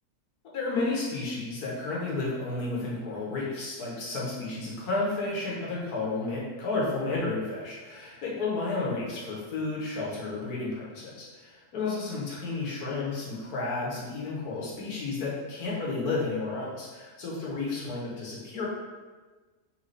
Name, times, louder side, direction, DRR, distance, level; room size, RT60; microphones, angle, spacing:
voice 1, 0.5-18.7, left 3 dB, 80° left, -4 dB, 1.6 m, -32 dB
4.0 x 3.4 x 3.2 m, 1.3 s
omnidirectional pair, 1.6 m